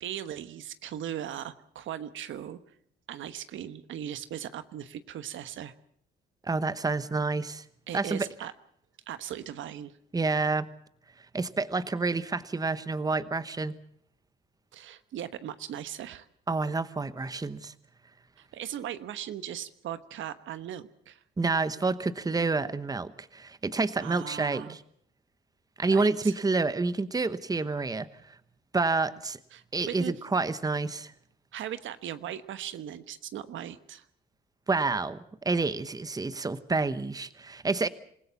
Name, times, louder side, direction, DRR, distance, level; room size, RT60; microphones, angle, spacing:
voice 1, 0.0-2.6 3.1-5.7 7.9-8.5 9.1-9.9 14.7-16.3 18.4-21.2 24.0-24.8 25.9-26.3 29.5-30.1 31.5-34.1, right 10 dB, 75° right, 12 dB, 1.2 m, -38 dB
voice 2, 6.4-7.6 7.9-8.3 10.1-10.7 11.3-13.7 16.5-17.7 21.4-24.8 25.8-28.3 28.7-29.4 29.7-31.1 34.7-35.2 35.4-37.9, right 3 dB, 20° right, 14 dB, 1.1 m, -28 dB
27.0 x 16.0 x 7.1 m, 0.68 s
cardioid pair, 90°, 20 cm